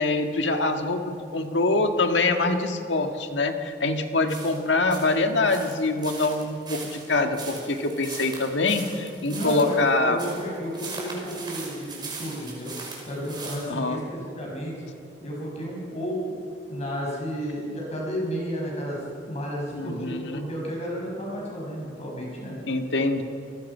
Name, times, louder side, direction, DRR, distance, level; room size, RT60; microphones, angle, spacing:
voice 1, 0.0-10.2 13.7-14.0 19.7-20.5 22.6-23.2, left 2 dB, 80° left, 5 dB, 1.8 m, -24 dB
sound 1, 4.3-13.7, right 3 dB, 25° right, 5.3 m, -39 dB
voice 2, 9.3-12.7 13.1-14.7 15.2-16.4 16.7-22.6, equal, 40° left, -3 dB, 6.0 m, -32 dB
29.5 x 19.5 x 5.6 m, 2.6 s
head